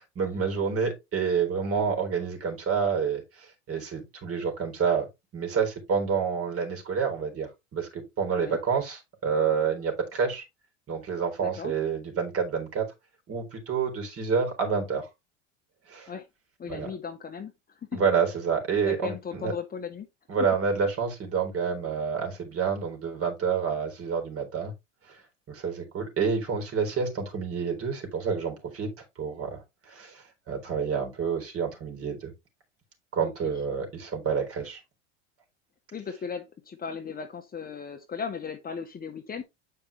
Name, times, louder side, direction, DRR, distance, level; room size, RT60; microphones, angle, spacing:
voice 1, 0.2-5.1 5.3-10.4 10.9-12.9 13.3-15.1 15.9-16.1 16.7-16.9 17.9-19.5 20.3-24.7 25.1-25.2 25.5-32.3 33.1-34.8, right 6 dB, 40° right, 4.0 m, -28 dB
voice 2, 11.4-11.7 16.1-16.3 16.6-17.5 17.8-18.1 18.8-20.1 33.2-33.5 35.9-39.4, left 6 dB, 25° left, 1.4 m, -36 dB
8.4 x 5.3 x 3.4 m
hypercardioid pair, 85°, 36 cm